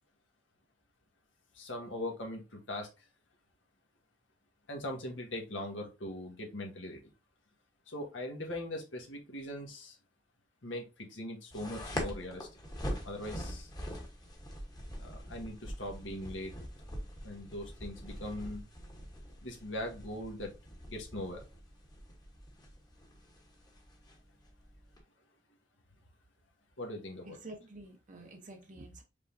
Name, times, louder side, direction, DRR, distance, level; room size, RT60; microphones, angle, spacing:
voice 1, 1.5-2.9 4.7-7.0 7.9-10.0 10.6-12.5 13.0-13.7 15.0-16.5 17.2-18.6 19.4-20.5 20.9-21.5 26.8-27.4, left 1 dB, 90° left, 1 dB, 1.5 m, -40 dB
sound 1, 11.5-25.0, equal, 20° left, 1.1 m, -44 dB
voice 2, 27.2-29.0, right 2 dB, 45° right, 4 dB, 0.7 m, -49 dB
5.2 x 3.6 x 2.6 m, 0.28 s
head